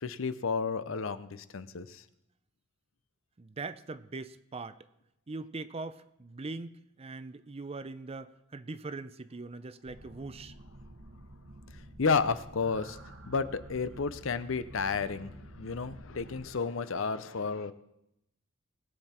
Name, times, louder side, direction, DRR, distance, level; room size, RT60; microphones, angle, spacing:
voice 1, 0.0-2.0 12.0-13.0 13.3-17.7, left 5 dB, 70° left, 0.7 m, -32 dB
voice 2, 3.4-4.8 5.3-10.5, right 3 dB, 30° right, 0.5 m, -41 dB
sound 1, 9.8-16.5, right 1 dB, 75° right, 1.3 m, -50 dB
19.5 x 8.2 x 4.4 m
head